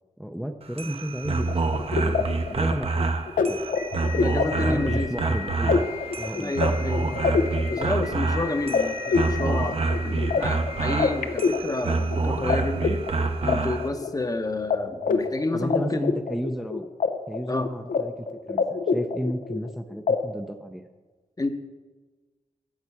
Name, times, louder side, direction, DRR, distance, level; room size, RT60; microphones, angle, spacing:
voice 1, 0.2-3.1 3.4-3.6 4.6-5.9 6.2-6.6 15.5-16.9 17.3-20.8, equal, ahead, 5 dB, 0.5 m, -33 dB
sound 1, 0.6-13.9, right 3 dB, 45° right, 0.8 m, -27 dB
sound 2, 1.4-12.5 12.8-14.4 14.7-14.8 15.0-17.1 17.3-18.0 18.3-19.7 20.1-20.2, left 5 dB, 80° left, 0.7 m, -26 dB
voice 2, 4.2-5.1 6.4-7.3 7.7-13.0 13.4-16.1 17.5-17.7 21.4-21.5, left 2 dB, 25° left, 8 dB, 0.8 m, -30 dB
8.9 x 6.0 x 8.3 m, 1.3 s
wide cardioid pair, 90°, 14 cm